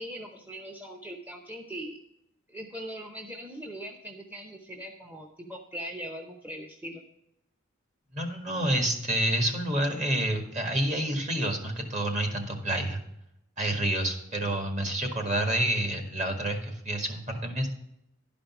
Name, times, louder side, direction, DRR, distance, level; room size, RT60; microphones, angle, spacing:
voice 1, 0.0-2.0 2.5-7.0, equal, 10° right, 2 dB, 0.7 m, -40 dB
voice 2, 8.1-13.0 13.6-17.7, right 1 dB, 35° right, 4 dB, 1.6 m, -28 dB
11.5 x 5.1 x 5.9 m, 0.81 s
head